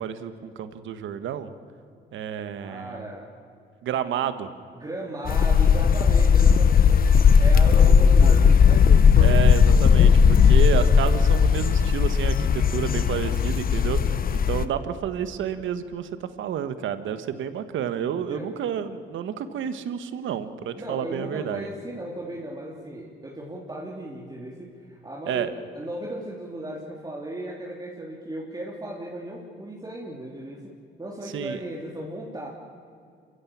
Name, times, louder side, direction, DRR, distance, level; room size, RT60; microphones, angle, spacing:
voice 1, 0.0-1.5 2.1-3.0 3.8-4.5 9.2-14.0 14.3-21.7 25.3-25.5 31.3-31.6, right 9 dB, 75° right, 11 dB, 1.5 m, -30 dB
voice 2, 2.5-3.3 4.7-8.9 13.7-14.3 14.6-14.8 18.3-18.6 20.7-30.7 31.0-32.5, right 1 dB, 20° right, -3 dB, 3.2 m, -36 dB
sound 1, 5.3-14.6, left 6 dB, 45° left, 0.9 m, -17 dB
27.5 x 15.5 x 8.8 m, 2.5 s
cardioid pair, 90°, 20 cm